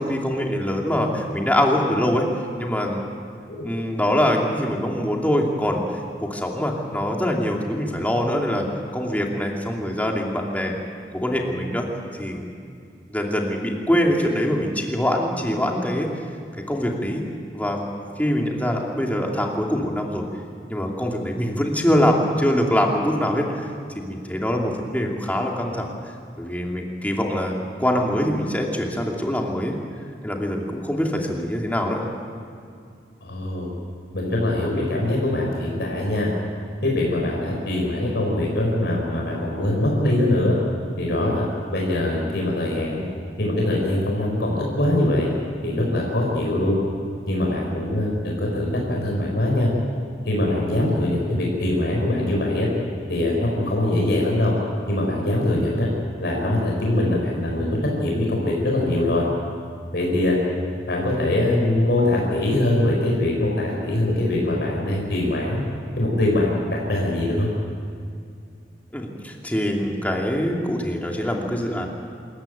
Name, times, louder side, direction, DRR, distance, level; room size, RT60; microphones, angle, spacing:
voice 1, 0.0-2.3 2.6-3.1 3.6-5.8 6.2-8.7 8.9-10.7 11.1-11.9 12.2-12.5 13.1-16.1 16.7-17.2 17.5-17.9 18.2-20.2 20.7-23.7 23.9-25.9 26.4-29.7 30.2-32.0 68.9-71.9, equal, 10° left, 0 dB, 2.7 m, -23 dB
voice 2, 33.2-33.7 34.1-36.3 36.8-40.6 41.0-41.4 41.7-43.0 43.4-45.3 45.6-46.8 47.3-49.7 50.3-52.7 53.1-54.5 54.9-55.9 56.2-59.2 59.9-60.4 60.9-65.6 66.0-67.5, left 1 dB, 70° left, -2 dB, 4.5 m, -22 dB
26.5 x 14.5 x 9.2 m, 2.4 s
head